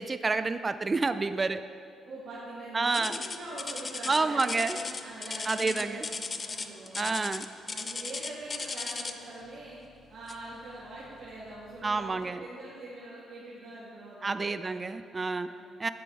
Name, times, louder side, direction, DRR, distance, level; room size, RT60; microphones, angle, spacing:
voice 1, 0.0-1.6 2.7-3.2 4.1-4.8 5.5-6.0 7.0-7.4 11.8-12.4 14.2-15.5 15.8-15.9, right 3 dB, 30° right, 11 dB, 0.3 m, -29 dB
voice 2, 2.0-6.1 6.4-7.2 7.6-9.8 10.1-14.9 15.5-15.7, right 2 dB, 60° right, -11 dB, 2.4 m, -43 dB
sound 1, 2.9-9.3 10.3-10.5 11.1-11.2 11.9-12.0, left 4 dB, 35° left, 0.5 m, -37 dB
10.0 x 6.0 x 4.8 m, 2.3 s
cardioid pair, 90°, 0 cm